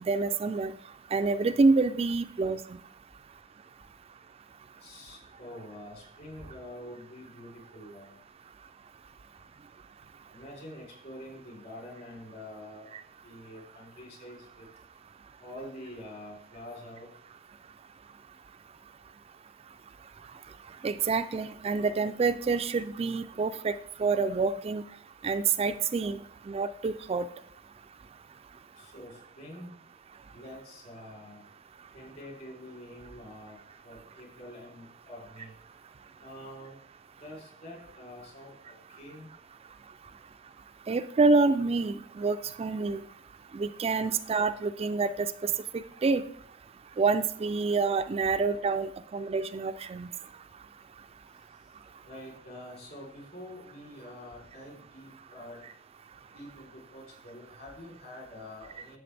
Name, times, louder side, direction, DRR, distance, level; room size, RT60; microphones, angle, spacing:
voice 1, 0.0-0.7 1.1-2.6 20.8-23.7 24.0-24.8 25.2-26.2 26.5-27.3 40.9-43.0 43.5-46.2 47.0-50.1, right 4 dB, 30° right, 10 dB, 0.3 m, -27 dB
voice 2, 4.8-8.2 10.3-12.9 13.2-14.7 15.4-17.1 28.8-29.7 30.3-31.5 31.9-33.6 33.8-35.5 36.2-36.8 37.2-39.3 52.0-55.7 56.3-59.0, left 1 dB, 55° left, -2 dB, 3.7 m, -46 dB
11.0 x 7.4 x 3.4 m, 0.65 s
head